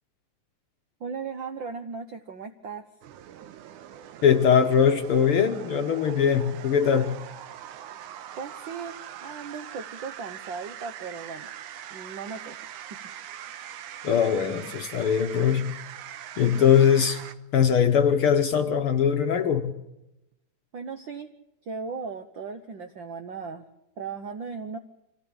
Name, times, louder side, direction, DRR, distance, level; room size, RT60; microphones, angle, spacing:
voice 1, 1.0-2.9 8.4-11.5 11.9-12.6 12.9-13.0 20.7-21.3 21.6-23.6 24.0-24.8, right 5 dB, 65° right, 8 dB, 1.2 m, -37 dB
sound 1, 3.0-17.3, right 11 dB, 85° right, 2.5 m, -42 dB
voice 2, 4.2-7.2 14.0-15.7 16.4-17.2 17.5-19.7, left 7 dB, 60° left, 6 dB, 1.6 m, -21 dB
25.5 x 16.0 x 8.7 m, 0.90 s
omnidirectional pair, 3.5 m